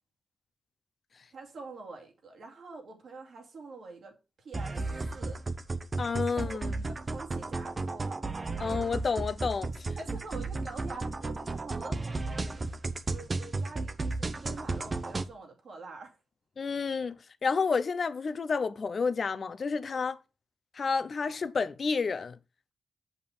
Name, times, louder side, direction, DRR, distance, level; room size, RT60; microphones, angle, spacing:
voice 1, 1.3-4.8 5.1-5.4 6.0-8.2 9.9-12.6 13.1-16.2 19.9-20.1, right 3 dB, 70° right, 2.4 m, -46 dB
sound 1, 4.5-15.2, right 3 dB, 40° right, 0.9 m, -34 dB
voice 2, 6.0-6.7 8.6-9.9 16.6-20.2 20.7-22.4, left 5 dB, 55° left, 0.7 m, -30 dB
6.9 x 5.6 x 5.5 m
supercardioid pair, 50°, 0 cm